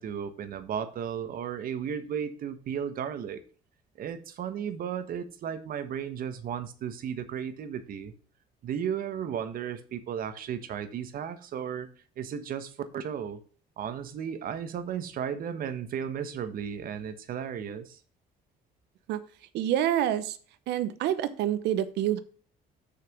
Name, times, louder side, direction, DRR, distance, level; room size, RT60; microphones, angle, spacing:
voice 1, 0.0-3.4 4.0-8.1 8.6-11.9 12.2-13.4 13.8-18.0, right 8 dB, 60° right, 11 dB, 1.2 m, -34 dB
voice 2, 19.5-20.4 20.7-22.2, right 11 dB, 80° right, 14 dB, 0.9 m, -27 dB
6.8 x 5.8 x 5.9 m, 0.41 s
cardioid pair, 110°, 17 cm